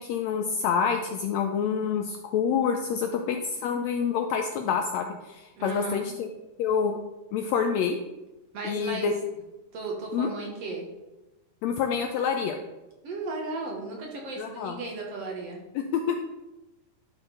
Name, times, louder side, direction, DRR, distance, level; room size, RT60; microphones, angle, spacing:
voice 1, 0.0-6.3 6.6-7.0 7.3-8.0 8.6-9.1 10.1-10.3 11.6-12.6 14.4-14.8 15.7-16.2, left 7 dB, 80° left, 4 dB, 1.6 m, -27 dB
voice 2, 5.6-6.1 8.5-9.1 9.7-10.9 13.0-15.6, right 3 dB, 60° right, 0 dB, 2.0 m, -35 dB
11.5 x 4.4 x 3.8 m, 1.0 s
omnidirectional pair, 3.5 m